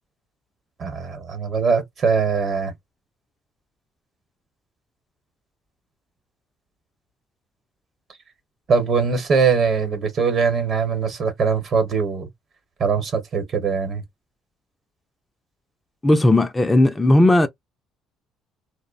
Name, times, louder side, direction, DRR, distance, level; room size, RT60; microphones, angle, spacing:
voice 1, 0.8-2.7 8.7-12.3 12.8-14.0, right 5 dB, 50° right, 1.0 m, -21 dB
voice 2, 16.0-17.5, left 1 dB, 15° left, 0.4 m, -16 dB
2.6 x 2.0 x 2.4 m
supercardioid pair, 80°, 0 cm